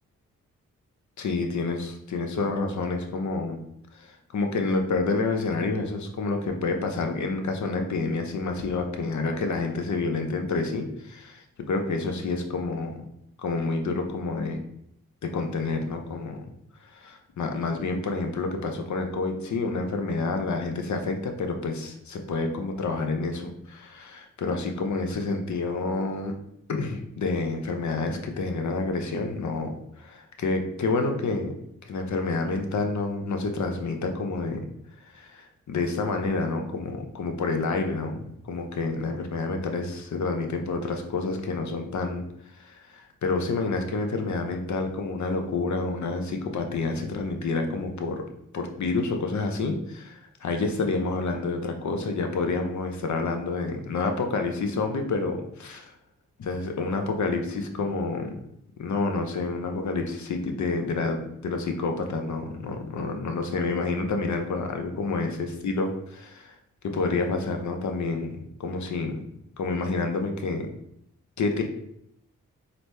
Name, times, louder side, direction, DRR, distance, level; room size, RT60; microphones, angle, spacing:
voice 1, 1.2-3.6 3.9-13.0 13.4-14.6 15.2-16.4 16.9-26.3 26.7-31.5 31.8-34.7 35.1-42.2 42.5-48.2 48.5-55.9 56.4-58.4 58.8-66.5 66.8-69.2 69.6-70.7 71.4-71.6, left 3 dB, 55° left, 4 dB, 0.7 m, -28 dB
3.9 x 2.2 x 3.1 m, 0.74 s
supercardioid pair, 40°, 35 cm